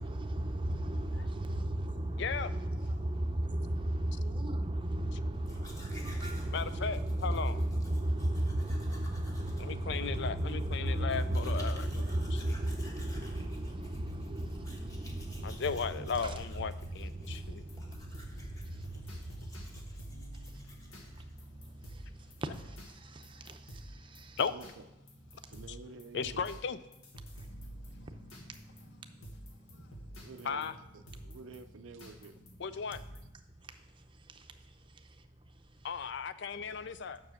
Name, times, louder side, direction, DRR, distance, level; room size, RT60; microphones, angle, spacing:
voice 1, 0.0-24.4 25.4-25.5 27.3-27.5 33.5-35.9, right 1 dB, 25° right, 0.6 m, -36 dB
voice 2, 2.2-2.5 6.5-7.6 9.6-12.0 12.3-12.6 15.4-17.6 24.4-24.5 26.1-26.8 30.5-30.7 32.6-33.0 35.8-37.2, left 6 dB, 60° left, 0.4 m, -36 dB
Domestic sounds home sounds, 5.3-21.4, left 1 dB, 15° left, 1.2 m, -55 dB
sound 1, 17.7-33.3, equal, 85° left, 1.7 m, -50 dB
voice 3, 24.5-24.8 25.3-26.5 30.1-32.4 33.1-33.2, right 4 dB, 70° right, 0.4 m, -51 dB
7.2 x 6.2 x 6.4 m
head